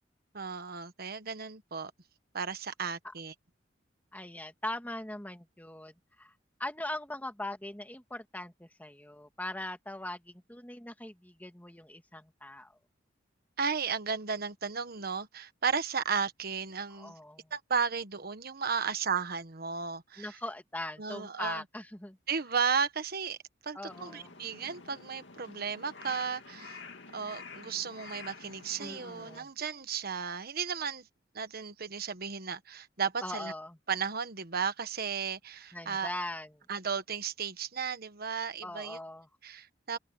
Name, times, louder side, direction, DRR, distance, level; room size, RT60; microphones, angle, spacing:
voice 1, 0.3-1.9 2.3-3.3 13.6-17.1 17.5-20.4 21.0-21.6 22.3-23.4 23.6-26.8 27.1-31.1 31.3-33.5 33.9-36.1 36.7-39.0 39.4-40.0, right 6 dB, 55° right, 1.4 m, -34 dB
voice 2, 4.1-6.3 6.6-12.7 17.0-17.5 20.2-22.2 23.7-24.4 28.8-29.5 33.2-33.8 35.7-36.6 38.6-39.3, left 1 dB, 10° left, 1.9 m, -41 dB
Crow, 23.9-29.4, left 4 dB, 70° left, 2.5 m, -49 dB
head